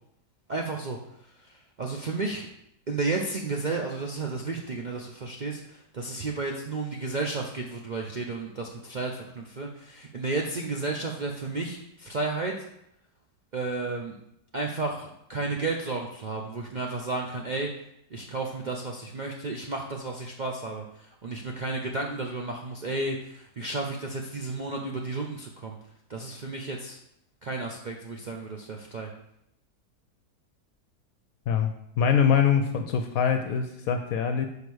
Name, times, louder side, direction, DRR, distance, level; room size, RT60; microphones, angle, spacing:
voice 1, 0.5-1.0 1.5-2.5 2.9-12.5 13.5-14.2 14.5-17.7 18.1-25.8 26.1-27.0 27.4-29.1, right 3 dB, 75° right, 1 dB, 0.4 m, -32 dB
voice 2, 32.0-34.5, left 7 dB, 70° left, 6 dB, 1.0 m, -23 dB
5.1 x 5.0 x 6.2 m, 0.76 s
omnidirectional pair, 1.8 m